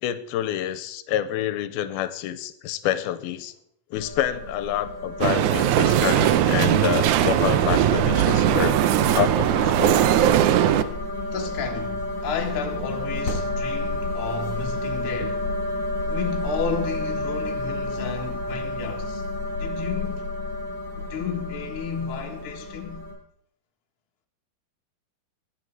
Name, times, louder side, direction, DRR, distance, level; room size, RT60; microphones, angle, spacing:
voice 1, 0.0-3.5 3.9-8.8 9.1-10.0, left 12 dB, 90° left, 2.6 m, -27 dB
sound 1, 3.9-23.1, left 2 dB, 25° left, 4.8 m, -31 dB
sound 2, 5.2-10.8, right 11 dB, 90° right, 1.7 m, -20 dB
voice 2, 11.3-15.4 16.1-19.2 19.6-20.3 21.1-23.1, left 6 dB, 45° left, 2.0 m, -32 dB
20.5 x 8.3 x 4.7 m
omnidirectional pair, 4.3 m